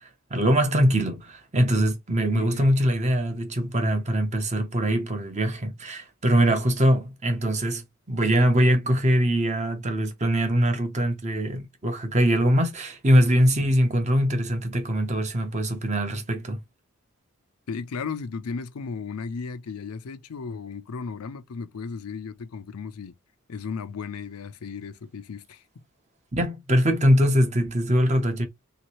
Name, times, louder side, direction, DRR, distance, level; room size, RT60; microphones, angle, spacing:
voice 1, 0.0-16.6 26.4-28.5, equal, 30° right, 0.7 m, -22 dB
voice 2, 2.3-2.7 17.7-23.1 23.5-25.6, left 5 dB, 85° left, 0.5 m, -35 dB
3.2 x 2.9 x 2.9 m
head